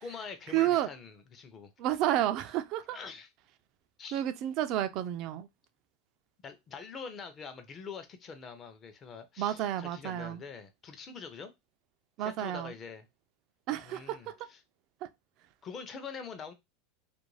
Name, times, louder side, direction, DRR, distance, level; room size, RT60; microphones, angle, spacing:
voice 1, 0.0-1.7 2.9-3.3 4.0-4.2 6.4-11.5 12.2-13.1 13.9-14.6 15.6-16.5, left 5 dB, 30° left, 0.6 m, -44 dB
voice 2, 0.5-0.9 1.8-3.0 4.1-5.5 9.4-10.4 12.2-12.7 13.7-14.2 15.0-15.1, right 12 dB, 50° right, 0.3 m, -30 dB
2.5 x 2.2 x 3.1 m
supercardioid pair, 130°, 0 cm